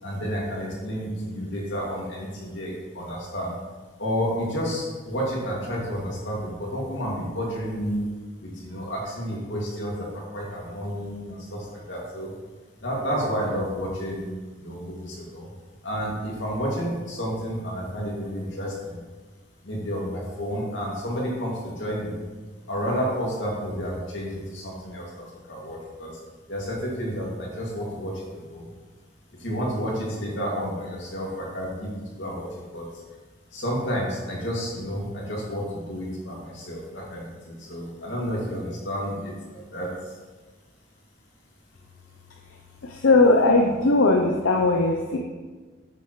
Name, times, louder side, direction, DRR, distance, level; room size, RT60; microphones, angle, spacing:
voice 1, 0.0-3.6 4.0-12.3 12.8-14.3 14.6-15.5 15.8-19.0 19.6-22.2 22.7-25.1 25.5-26.1 26.5-28.7 29.4-32.9 33.5-39.9, equal, 70° left, -3 dB, 2.3 m, -30 dB
voice 2, 42.8-45.2, left 2 dB, 85° left, 3 dB, 0.6 m, -19 dB
8.5 x 7.5 x 3.1 m, 1.4 s
head